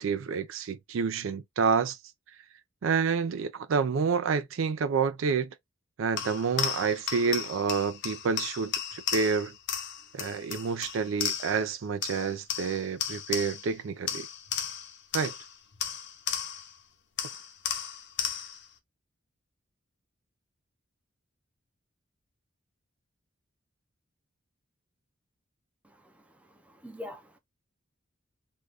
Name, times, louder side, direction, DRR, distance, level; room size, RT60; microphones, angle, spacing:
voice 1, 0.0-2.0 2.8-5.5 6.0-9.5 10.1-14.3 15.1-15.3, right 5 dB, 70° right, 0.4 m, -28 dB
sound 1, 6.2-11.7 12.0-13.8 14.1-16.8 17.2-18.7, left 8 dB, 60° left, 0.7 m, -35 dB
voice 2, 25.8-27.4, left 1 dB, 5° right, 0.5 m, -46 dB
2.6 x 2.3 x 3.2 m
head